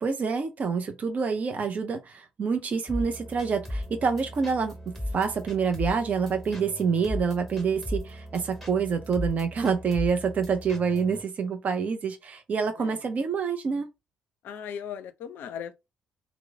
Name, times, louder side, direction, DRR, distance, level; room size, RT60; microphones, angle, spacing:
voice 1, 0.0-13.9, right 5 dB, 40° right, 0.5 m, -27 dB
sound 1, 2.9-11.2, left 1 dB, ahead, 1.6 m, -37 dB
voice 2, 14.4-15.7, left 8 dB, 55° left, 0.4 m, -37 dB
3.0 x 2.0 x 3.5 m
figure-of-eight pair, 45°, 4 cm